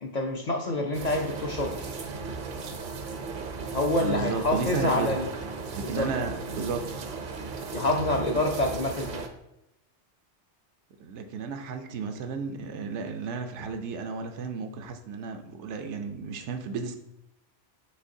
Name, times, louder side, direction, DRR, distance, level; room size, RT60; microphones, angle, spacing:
voice 1, 0.0-1.9 3.7-5.3 5.8-6.1 7.7-9.2, left 2 dB, 55° left, 1 dB, 0.5 m, -27 dB
sound 1, 0.9-9.3, right 4 dB, 55° right, 0.6 m, -36 dB
voice 2, 4.0-5.2 5.7-7.0 11.0-17.0, right 5 dB, 80° right, 6 dB, 0.9 m, -33 dB
6.3 x 3.1 x 2.7 m, 0.85 s
omnidirectional pair, 1.2 m